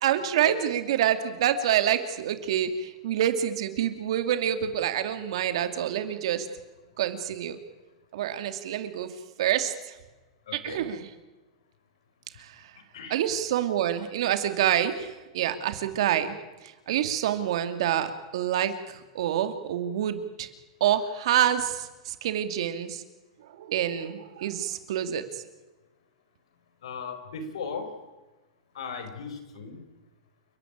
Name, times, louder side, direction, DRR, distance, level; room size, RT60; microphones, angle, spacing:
voice 1, 0.0-6.5 7.0-7.6 8.1-9.1 9.4-9.7 10.6-11.1 12.4-12.5 13.1-16.4 16.9-20.5 20.8-23.0 23.6-25.4, right 10 dB, 70° right, 9 dB, 2.7 m, -27 dB
voice 2, 10.5-10.9 12.3-12.4 12.7-13.2 26.8-27.9 28.7-29.8, left 5 dB, 90° left, 9 dB, 4.6 m, -38 dB
29.5 x 12.0 x 8.9 m, 1.1 s
supercardioid pair, 145°, 3 cm